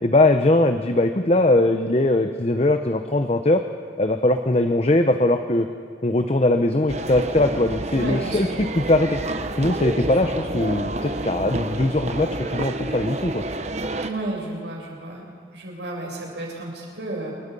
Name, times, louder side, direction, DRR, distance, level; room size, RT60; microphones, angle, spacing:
voice 1, 0.0-3.6 4.0-5.7 6.0-9.2 9.6-13.4, left 2 dB, 35° left, 7 dB, 0.8 m, -20 dB
sound 1, 6.9-14.1, right 2 dB, 40° right, 1.1 m, -29 dB
voice 2, 7.9-8.5 14.0-17.3, right 2 dB, 75° right, -2 dB, 7.4 m, -32 dB
28.5 x 23.5 x 5.5 m, 2.1 s
head